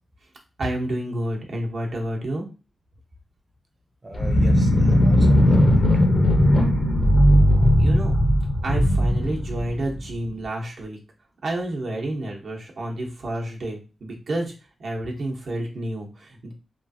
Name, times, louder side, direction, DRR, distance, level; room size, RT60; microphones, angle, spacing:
voice 1, 0.6-2.5 7.8-8.2 8.6-11.0 11.4-14.5 14.8-16.5, right 1 dB, 70° right, -1 dB, 0.8 m, -29 dB
voice 2, 4.0-6.0, right 1 dB, 30° right, 3 dB, 0.7 m, -39 dB
sound 1, 4.1-10.1, equal, 60° left, 0.7 m, -18 dB
3.1 x 2.4 x 2.6 m, 0.33 s
wide cardioid pair, 95°, 0 cm